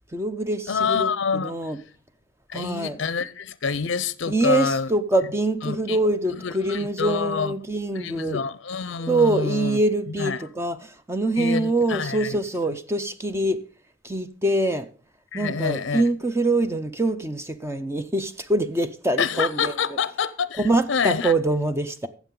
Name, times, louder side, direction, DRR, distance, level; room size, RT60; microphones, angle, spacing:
voice 1, 0.1-1.8 2.5-3.0 4.3-8.4 9.1-13.6 14.0-14.9 15.3-19.7 20.6-22.1, right 2 dB, 15° right, 0.5 m, -24 dB
voice 2, 0.7-1.6 2.5-4.9 5.6-6.0 6.3-7.5 8.0-9.8 10.2-10.5 11.4-12.4 15.3-16.0 19.2-21.3, left 5 dB, 65° left, 0.5 m, -27 dB
15.0 x 7.2 x 3.8 m
head